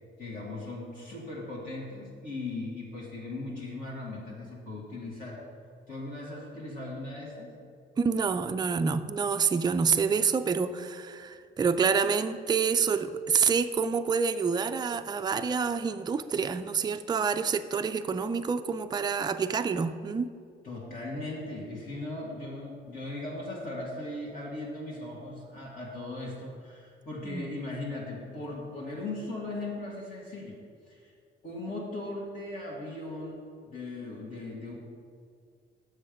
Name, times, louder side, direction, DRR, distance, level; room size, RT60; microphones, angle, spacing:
voice 1, 0.2-5.4 5.9-7.5 20.6-30.6 30.9-31.1 31.4-34.7, left 2 dB, 45° left, -5 dB, 1.8 m, -38 dB
voice 2, 8.0-20.3 27.3-27.5, right 6 dB, 20° right, 8 dB, 0.4 m, -27 dB
7.6 x 6.5 x 5.1 m, 2.2 s
cardioid pair, 90°, 20 cm